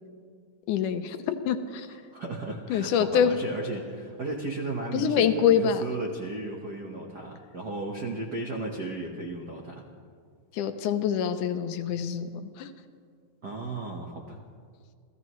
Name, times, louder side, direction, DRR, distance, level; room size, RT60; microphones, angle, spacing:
voice 1, 0.7-1.9 2.7-3.3 4.9-5.8 10.5-12.7, left 8 dB, 75° left, 8 dB, 2.2 m, -25 dB
voice 2, 2.1-9.9 13.4-14.4, right 2 dB, 60° right, 0 dB, 1.0 m, -35 dB
29.0 x 16.0 x 3.1 m, 2.1 s
omnidirectional pair, 3.8 m